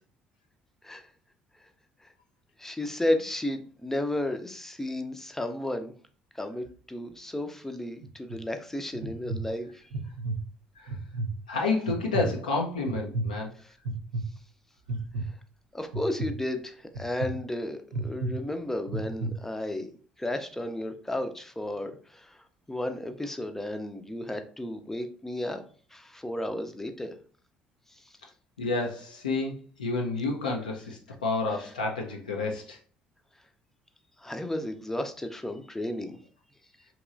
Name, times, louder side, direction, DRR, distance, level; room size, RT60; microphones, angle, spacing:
voice 1, 2.6-5.9 6.3-9.8 15.7-19.9 20.2-25.6 25.9-27.2 31.5-31.6 34.2-36.2, left 1 dB, 10° left, 7 dB, 0.5 m, -33 dB
sound 1, 8.0-8.4 8.9-9.4 9.9-10.4 10.9-11.3 11.9-12.3 12.9-13.3 13.9-14.2 14.9-15.3 15.9-16.3 17.0-17.3 17.9-18.3 18.9-19.3, right 2 dB, 70° right, 0.5 m, -31 dB
voice 2, 11.5-13.5 28.6-32.8, left 3 dB, 80° left, 0 dB, 0.4 m, -30 dB
3.0 x 2.8 x 2.4 m, 0.41 s
figure-of-eight pair, 50°, 4 cm